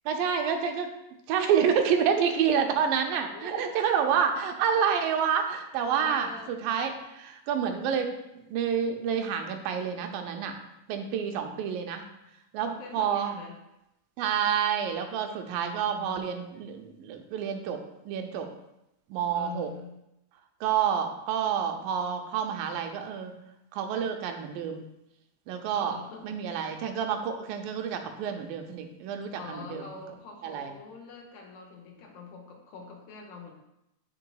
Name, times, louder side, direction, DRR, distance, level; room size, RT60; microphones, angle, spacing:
voice 1, 0.1-0.9 1.3-8.1 8.5-10.5 10.9-12.0 12.5-13.4 14.2-18.5 19.1-19.7 20.6-23.4 23.7-24.8 25.5-25.9 26.2-29.9 30.4-30.7, right 7 dB, 85° right, 5 dB, 2.3 m, -28 dB
voice 2, 3.3-4.1 6.0-6.5 11.1-11.6 12.6-13.6 15.5-16.2 19.3-19.9 25.7-26.4 29.4-33.6, left 5 dB, 85° left, 0 dB, 2.8 m, -44 dB
8.0 x 6.6 x 2.3 m, 0.88 s
omnidirectional pair, 4.0 m